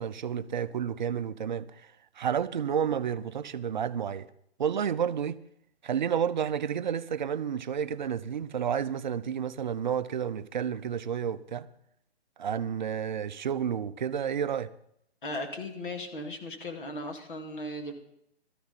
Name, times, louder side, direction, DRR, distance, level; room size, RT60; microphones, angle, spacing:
voice 1, 0.0-4.3 4.6-5.4 5.8-11.7 12.4-14.7, right 8 dB, 45° right, 0.6 m, -31 dB
voice 2, 15.2-17.9, left 1 dB, 50° left, 2.4 m, -37 dB
16.5 x 13.5 x 4.1 m
hypercardioid pair, 155°, 32 cm